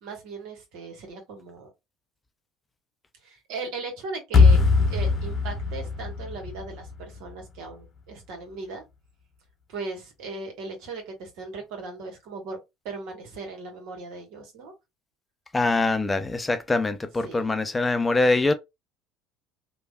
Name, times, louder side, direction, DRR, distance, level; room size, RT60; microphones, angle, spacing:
voice 1, 0.0-1.7 3.2-8.8 9.7-12.6 12.8-14.7 17.2-17.6, right 3 dB, 65° right, 1.2 m, -38 dB
sound 1, 4.3-7.4, left 4 dB, 40° left, 0.8 m, -21 dB
voice 2, 15.5-18.5, left 2 dB, 20° left, 0.4 m, -23 dB
3.2 x 2.3 x 2.2 m
hypercardioid pair, 70°, 0 cm